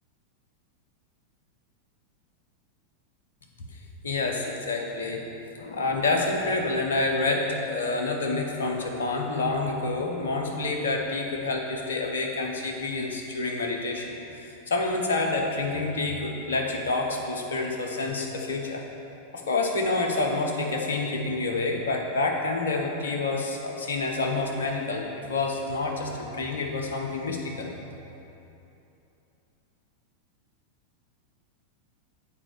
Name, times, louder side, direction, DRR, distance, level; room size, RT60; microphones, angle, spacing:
voice 1, 4.0-5.2 5.5-18.8 19.3-27.7, left 3 dB, 65° left, 1 dB, 1.1 m, -28 dB
7.4 x 4.8 x 6.8 m, 2.9 s
figure-of-eight pair, 90°, 0 cm